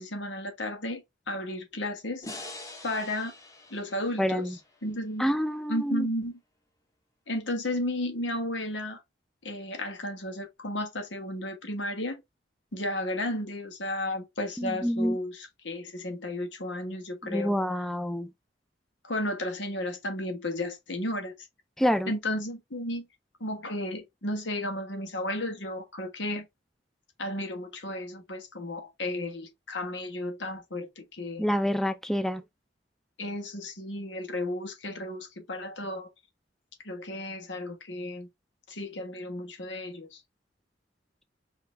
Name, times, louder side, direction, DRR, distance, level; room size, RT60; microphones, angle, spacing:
voice 1, 0.0-2.3 2.8-3.3 3.7-4.5 4.8-5.3 5.7-6.4 7.3-9.0 9.4-12.2 12.7-17.5 19.0-21.3 22.1-23.0 23.4-26.5 27.2-31.5 33.2-36.1 36.8-38.3 38.7-40.2, left 1 dB, 80° left, 1.5 m, -33 dB
sound 1, 2.2-5.5, left 2 dB, 20° left, 1.1 m, -45 dB
voice 2, 4.2-4.5 5.2-6.1 14.6-15.2 17.3-18.3 21.8-22.1 31.4-32.4, equal, ahead, 0.4 m, -27 dB
5.0 x 2.8 x 3.3 m
head